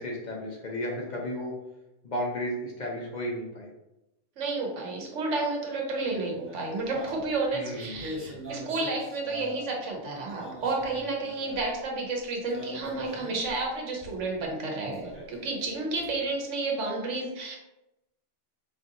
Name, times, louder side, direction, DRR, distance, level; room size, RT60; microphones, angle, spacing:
voice 1, 0.0-1.6 2.0-3.7 7.5-8.4, equal, 45° left, -1 dB, 0.7 m, -34 dB
voice 2, 4.4-17.6, right 3 dB, 80° right, 0 dB, 1.1 m, -31 dB
sound 1, 6.0-9.9 10.2-11.8 12.5-13.6 14.0-14.4 14.9-16.2, equal, 15° right, 0.7 m, -43 dB
4.2 x 2.7 x 2.6 m, 0.92 s
omnidirectional pair, 1.2 m